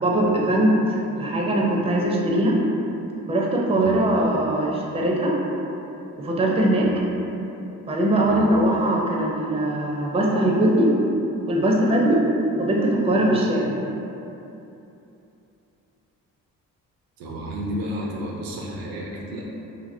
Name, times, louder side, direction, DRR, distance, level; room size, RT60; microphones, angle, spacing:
voice 1, 0.0-0.8 1.2-2.6 3.3-5.4 6.2-6.9 7.9-10.9 11.5-12.2 12.6-13.8, right 1 dB, 15° right, -3 dB, 0.4 m, -21 dB
voice 2, 17.2-19.4, equal, 70° right, -3 dB, 0.6 m, -31 dB
2.7 x 2.7 x 2.6 m, 2.9 s
supercardioid pair, 60°, 36 cm